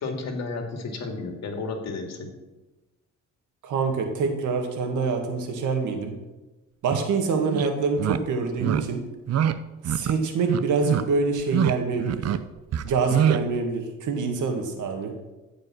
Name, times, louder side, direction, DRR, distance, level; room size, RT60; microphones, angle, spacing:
voice 1, 0.0-2.3, left 3 dB, 60° left, 3 dB, 2.4 m, -32 dB
voice 2, 3.6-6.1 6.8-9.0 9.8-12.3 12.8-15.1, right 4 dB, 80° right, 4 dB, 2.0 m, -26 dB
sound 1, 6.9-7.0 7.5-7.7 8.0-8.2 8.6-8.8 9.3-9.5 9.8-10.1 10.4-11.0 11.4-11.7 12.0-12.4 12.7-13.4, right 9 dB, 55° right, 0.7 m, -24 dB
15.0 x 5.3 x 6.2 m, 1.1 s
cardioid pair, 90°, 30 cm